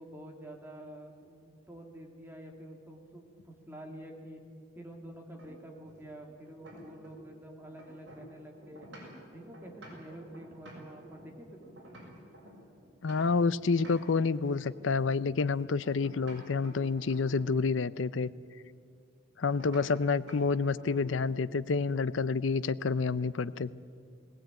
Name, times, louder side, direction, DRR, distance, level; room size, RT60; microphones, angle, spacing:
voice 1, 0.0-4.4 4.8-8.9 9.3-11.8, right 1 dB, 10° right, 1 dB, 2.6 m, -48 dB
sound 1, 5.4-7.4 7.6-13.5 13.8-14.9 15.8-17.6 19.6-19.9 20.3-20.5 20.8-21.4, equal, 60° right, 6.5 m, -51 dB
voice 2, 13.0-18.3 19.4-23.7, left 4 dB, 75° left, 17 dB, 0.6 m, -29 dB
19.0 x 18.5 x 9.0 m, 2.3 s
head